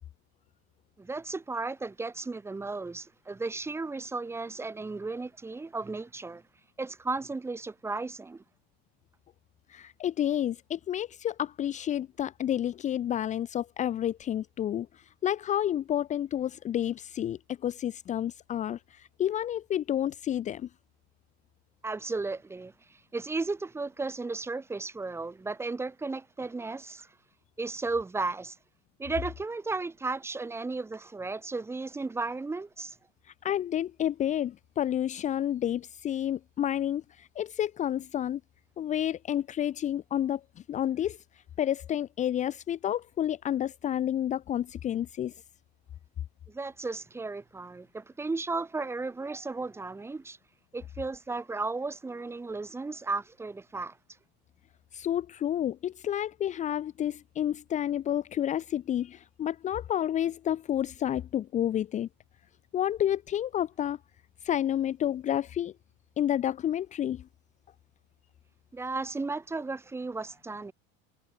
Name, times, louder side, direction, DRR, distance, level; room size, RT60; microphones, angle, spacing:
voice 1, 1.0-6.4 6.8-8.4 21.8-22.7 23.1-27.1 27.6-28.6 29.0-33.0 46.5-50.4 50.7-54.0 68.7-70.7, right 3 dB, 10° right, 2.8 m, -34 dB
voice 2, 9.7-20.7 33.4-38.4 38.8-40.4 40.7-41.2 41.6-45.3 54.9-62.1 62.7-64.0 64.4-65.7 66.2-67.3, left 11 dB, 25° left, 1.4 m, -30 dB
cardioid pair, 175°, 31 cm